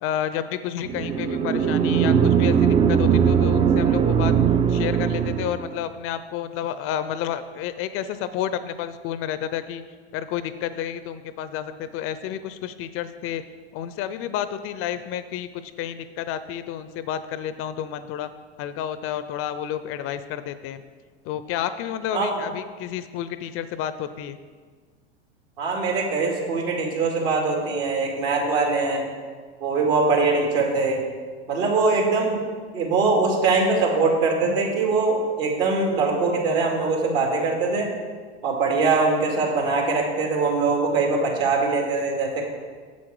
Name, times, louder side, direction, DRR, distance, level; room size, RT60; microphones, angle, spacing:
voice 1, 0.0-4.3 4.7-9.8 10.1-13.4 13.7-18.3 18.6-20.8 21.2-24.4, left 10 dB, 40° left, 13 dB, 0.5 m, -30 dB
sound 1, 0.9-5.8, right 7 dB, 20° right, 0.4 m, -20 dB
voice 2, 25.6-29.1 29.6-31.0 31.5-32.4 32.7-37.9 38.4-42.4, right 3 dB, 65° right, 0 dB, 2.3 m, -22 dB
8.4 x 7.4 x 4.7 m, 1.6 s
hypercardioid pair, 95°, 33 cm